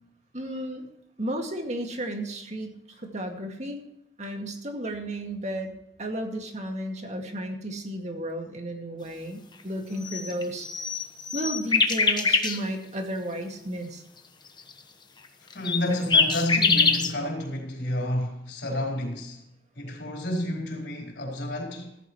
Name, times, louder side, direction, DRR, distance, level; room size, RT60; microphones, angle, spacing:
voice 1, 0.3-0.9 1.2-3.8 4.2-5.7 6.0-10.7 11.3-14.0, right 1 dB, 40° right, 2.1 m, -33 dB
sound 1, 10.0-12.6 15.7-17.1, left 4 dB, 25° left, 1.2 m, -23 dB
voice 2, 15.5-19.4 19.8-22.0, left 1 dB, 75° left, 4.3 m, -30 dB
15.5 x 14.5 x 3.1 m
head